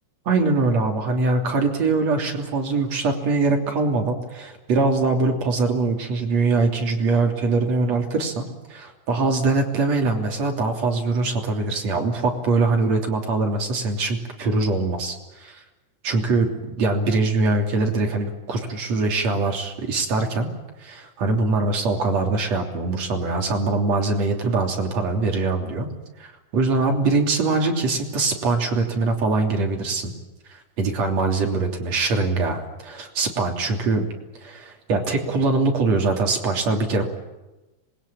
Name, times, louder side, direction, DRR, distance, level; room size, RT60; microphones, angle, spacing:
voice 1, 0.3-15.6 16.0-16.5 16.8-20.5 20.8-25.9 26.2-30.1 30.5-34.1 34.4-37.1, right 3 dB, 55° right, 2 dB, 4.3 m, -23 dB
26.0 x 21.0 x 8.9 m, 1.1 s
omnidirectional pair, 3.5 m